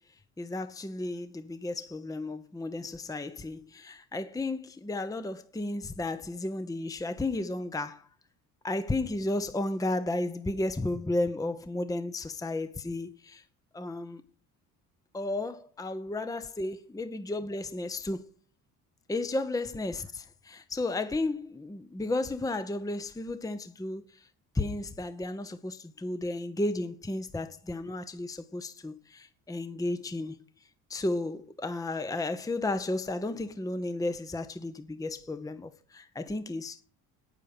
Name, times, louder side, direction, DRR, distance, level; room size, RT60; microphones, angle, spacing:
voice 1, 0.4-8.1 8.6-13.4 13.7-14.2 15.1-18.3 19.1-24.3 24.5-30.5 30.9-36.8, left 2 dB, 10° left, 0.9 m, -33 dB
9.1 x 8.9 x 6.8 m
hypercardioid pair, 55°, 45 cm